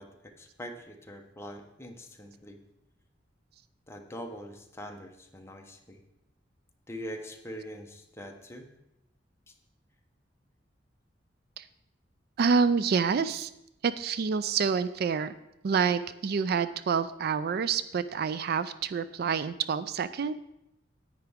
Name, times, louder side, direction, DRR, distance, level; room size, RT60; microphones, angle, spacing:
voice 1, 0.0-2.6 3.9-6.0 6.9-8.7 9.5-9.6, equal, 15° left, 3 dB, 1.0 m, -43 dB
voice 2, 12.4-13.5 13.8-15.3 15.6-20.3, right 5 dB, 55° right, 14 dB, 0.4 m, -27 dB
10.5 x 8.9 x 3.6 m, 0.84 s
head